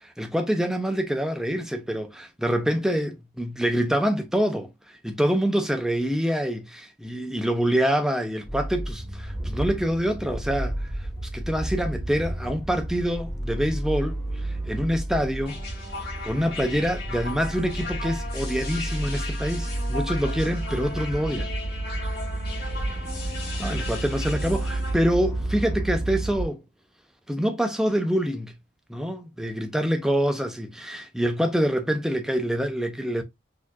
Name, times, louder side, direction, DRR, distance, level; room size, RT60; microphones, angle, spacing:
voice 1, 0.0-15.6 16.2-21.5 23.6-26.6 27.3-28.5 28.9-33.2, equal, 5° right, 0.5 m, -26 dB
sound 1, 8.4-26.4, right 1 dB, 10° left, 1.9 m, -31 dB
sound 2, 15.5-25.0, left 3 dB, 55° left, 1.8 m, -37 dB
4.2 x 2.8 x 2.3 m
head